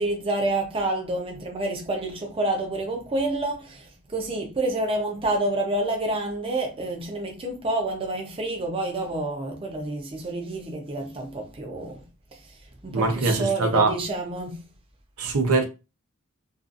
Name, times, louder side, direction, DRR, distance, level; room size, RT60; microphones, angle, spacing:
voice 1, 0.0-12.0 12.8-14.6, right 2 dB, 25° right, 0.6 m, -28 dB
voice 2, 12.9-13.9 15.2-15.6, right 3 dB, 85° right, 0.7 m, -22 dB
2.5 x 2.4 x 2.5 m
head